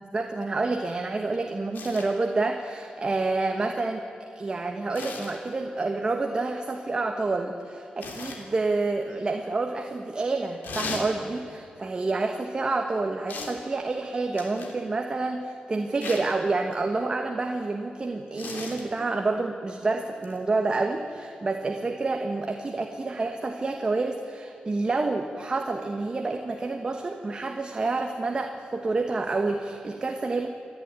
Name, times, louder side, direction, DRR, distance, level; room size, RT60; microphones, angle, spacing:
voice 1, 0.0-30.5, right 3 dB, 30° right, 4 dB, 1.3 m, -28 dB
sound 1, 1.7-2.1 4.9-5.4 8.0-8.4 10.6-11.1 13.3-13.6 14.4-14.8 16.0-16.3 18.4-18.8 20.2-20.4, left 4 dB, 85° left, 3.3 m, -36 dB
28.5 x 11.5 x 9.6 m, 2.5 s
wide cardioid pair, 120°, 3 cm